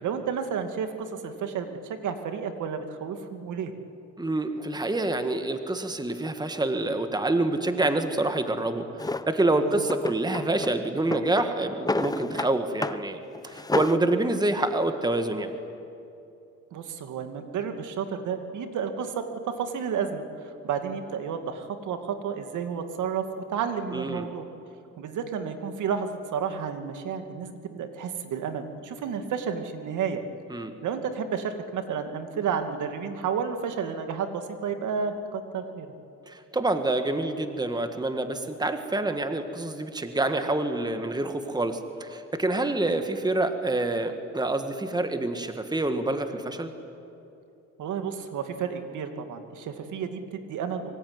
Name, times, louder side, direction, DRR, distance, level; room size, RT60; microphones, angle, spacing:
voice 1, 0.0-3.7 9.6-9.9 16.7-20.2 20.6-23.2 23.5-24.5 25.0-30.2 30.8-35.9 47.8-50.9, right 6 dB, 80° right, 7 dB, 2.4 m, -31 dB
voice 2, 4.2-15.6 23.9-24.3 30.5-30.7 36.3-46.7, right 2 dB, 15° right, 7 dB, 1.9 m, -27 dB
Drawer open or close, 9.0-9.3 9.9-10.7 11.0-12.5 12.8-13.0 13.3-14.0, left 2 dB, 15° left, 0.9 m, -30 dB
24.5 x 23.5 x 9.7 m, 2.8 s
cardioid pair, 90°, 30 cm